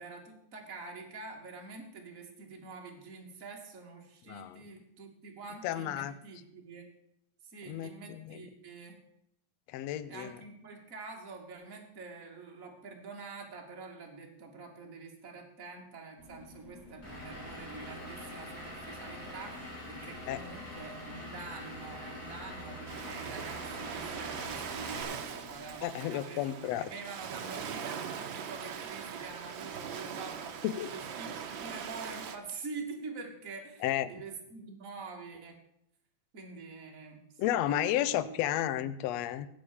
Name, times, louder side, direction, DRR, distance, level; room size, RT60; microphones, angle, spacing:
voice 1, 0.0-6.9 7.4-9.0 10.1-35.6 36.3-38.4, right 4 dB, 25° right, 1 dB, 2.5 m, -46 dB
voice 2, 4.3-4.6 5.6-6.1 7.7-8.5 9.7-10.3 20.3-20.4 25.8-26.9 30.6-30.9 33.8-34.1 37.4-39.5, left 12 dB, 80° left, 14 dB, 1.5 m, -32 dB
sound 1, 16.2-25.8, left 5 dB, ahead, 4.4 m, -54 dB
Vehicle / Engine, 17.0-25.0, equal, 25° left, 5.2 m, -44 dB
Ocean, 22.9-32.4, right 7 dB, 80° right, 1.1 m, -41 dB
14.5 x 8.8 x 7.0 m, 0.75 s
omnidirectional pair, 4.0 m